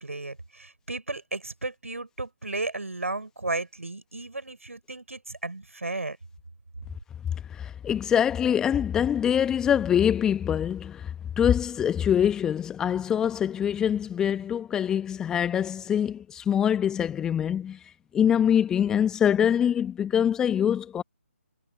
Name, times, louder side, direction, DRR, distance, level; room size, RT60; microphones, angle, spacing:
voice 1, 0.0-6.2, right 2 dB, 75° right, 5.1 m, -34 dB
voice 2, 7.5-17.8 18.1-21.0, left 9 dB, 10° left, 1.1 m, -24 dB
figure-of-eight pair, 145°, 7 cm